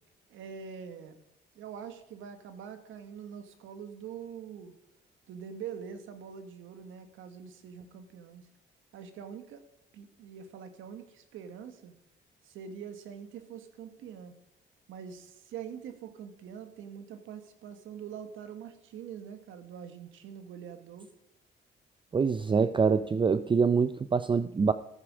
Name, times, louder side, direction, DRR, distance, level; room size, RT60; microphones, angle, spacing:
voice 1, 0.3-1.2 1.5-4.7 5.3-8.4 8.9-9.6 9.9-11.9 12.4-14.3 14.9-21.1, right 7 dB, 85° right, 1.5 m, -44 dB
voice 2, 22.1-24.7, right 5 dB, 25° right, 0.5 m, -25 dB
13.5 x 9.5 x 4.8 m
cardioid pair, 90°, 20 cm